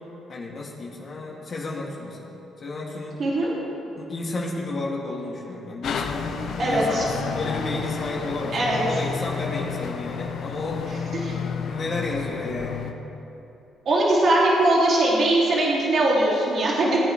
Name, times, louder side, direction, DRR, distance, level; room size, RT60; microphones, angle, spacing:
voice 1, 0.3-2.4 2.6-3.2 3.8-11.0 11.4-12.8, left 2 dB, 45° left, -3 dB, 2.7 m, -32 dB
voice 2, 3.2-3.5 6.6-7.0 8.5-8.8 11.2-11.3 13.8-17.0, right 1 dB, 55° right, -5 dB, 2.8 m, -21 dB
sound 1, 5.8-12.9, left 6 dB, 70° left, 0.9 m, -31 dB
19.0 x 9.0 x 3.4 m, 3.0 s
supercardioid pair, 60°, 0 cm